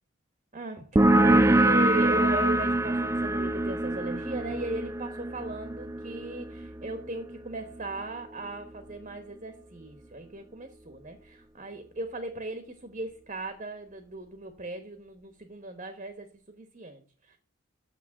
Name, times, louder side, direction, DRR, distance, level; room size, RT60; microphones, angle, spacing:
voice 1, 0.5-17.4, right 2 dB, 35° right, 7 dB, 1.1 m, -37 dB
sound 1, 1.0-8.2, right 1 dB, 15° right, 0.4 m, -25 dB
7.2 x 6.0 x 6.4 m, 0.40 s
head